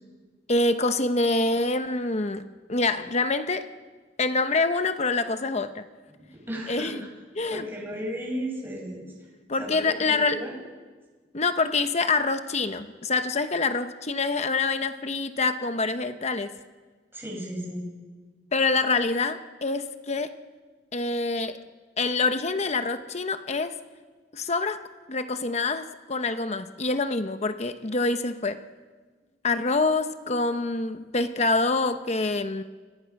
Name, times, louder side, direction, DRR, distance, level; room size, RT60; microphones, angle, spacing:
voice 1, 0.5-2.4 2.7-3.7 4.2-5.8 6.7-7.0 7.4-7.6 9.5-10.4 11.3-16.5 18.5-20.3 20.9-21.6 22.0-23.8 24.3-28.6 29.4-32.6, left 3 dB, 35° left, 9 dB, 0.9 m, -26 dB
voice 2, 6.3-6.9 7.5-9.1 9.6-10.6 17.1-17.9, equal, 10° right, -2 dB, 6.5 m, -34 dB
28.5 x 22.0 x 5.9 m, 1.4 s
head